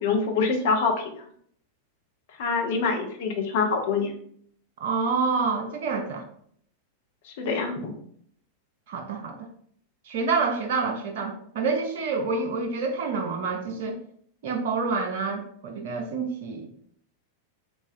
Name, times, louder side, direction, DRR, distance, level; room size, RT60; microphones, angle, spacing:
voice 1, 0.0-1.1 2.4-4.1 7.4-7.9, left 4 dB, 50° left, 4 dB, 0.6 m, -25 dB
voice 2, 4.8-6.2 8.9-9.5 10.1-14.0 14.4-16.7, right 4 dB, 55° right, 3 dB, 0.4 m, -28 dB
3.6 x 3.1 x 2.5 m, 0.64 s
figure-of-eight pair, 90°, 0 cm